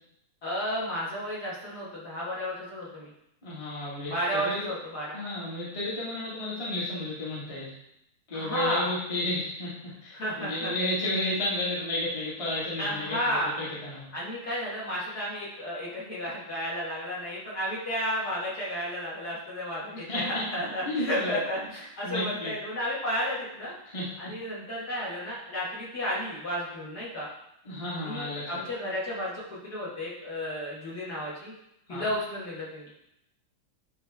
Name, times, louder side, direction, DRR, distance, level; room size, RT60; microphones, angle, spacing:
voice 1, 0.4-3.1 4.1-5.2 8.3-8.9 10.1-10.7 12.8-13.6 14.1-23.7 24.2-27.3 27.9-31.5 31.9-32.9, equal, 45° left, -7 dB, 2.2 m, -32 dB
voice 2, 3.4-4.7 5.1-7.7 8.3-14.1 20.1-20.2 20.8-21.4 22.0-22.5 23.9-24.1 27.6-28.4 31.9-32.1, left 1 dB, 15° left, -8 dB, 1.5 m, -32 dB
9.6 x 3.3 x 3.5 m, 0.80 s
omnidirectional pair, 2.4 m